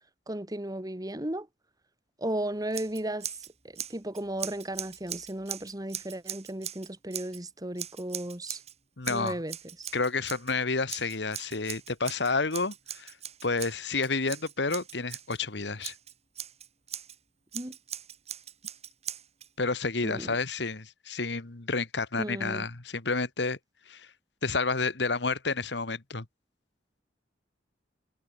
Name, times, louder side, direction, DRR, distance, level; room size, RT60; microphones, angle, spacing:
voice 1, 0.3-1.5 2.2-8.6 9.1-9.9 17.5-17.8 20.0-20.4 22.2-22.7, right 1 dB, 20° right, 2.0 m, -35 dB
Scissors, 2.7-3.5 3.8-7.4 7.8-8.7 9.0-10.5 10.9-15.4 15.8-17.2 17.5-19.5, right 10 dB, 35° right, 3.6 m, -40 dB
voice 2, 9.0-9.4 9.9-13.1 13.4-15.9 19.6-23.6 23.9-24.1 24.4-26.2, left 4 dB, 70° left, 1.7 m, -30 dB
head